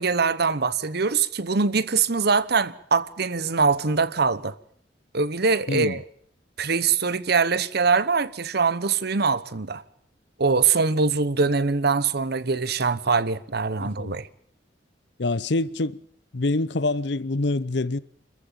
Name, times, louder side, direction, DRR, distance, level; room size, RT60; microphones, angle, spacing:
voice 1, 0.0-4.5 5.1-6.0 6.6-9.8 10.4-14.3, right 4 dB, 60° right, 1.0 m, -23 dB
voice 2, 5.7-6.0 13.8-14.2 15.2-16.0 16.3-18.0, left 2 dB, 70° left, 0.8 m, -26 dB
26.0 x 14.5 x 9.1 m
head